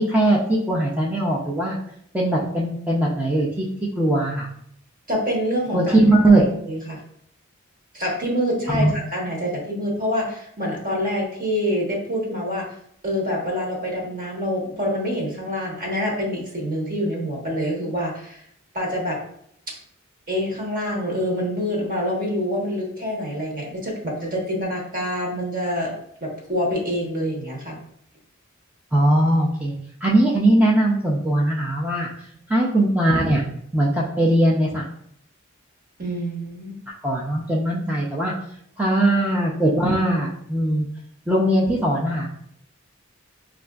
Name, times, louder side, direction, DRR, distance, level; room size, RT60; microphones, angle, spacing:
voice 1, 0.0-1.8 2.1-3.7 4.0-4.5 5.7-6.4 8.7-8.9 28.9-29.7 30.0-32.1 32.5-33.4 33.7-34.9 37.0-38.3 38.8-40.9 41.3-42.4, right 1 dB, 10° right, -4 dB, 0.4 m, -20 dB
voice 2, 5.1-6.0 6.3-7.0 7.9-12.7 13.0-18.4 18.7-19.2 19.7-19.8 20.3-25.9 26.2-27.8 36.0-36.8, equal, 45° right, -2 dB, 1.0 m, -26 dB
5.4 x 2.4 x 2.3 m, 0.68 s
head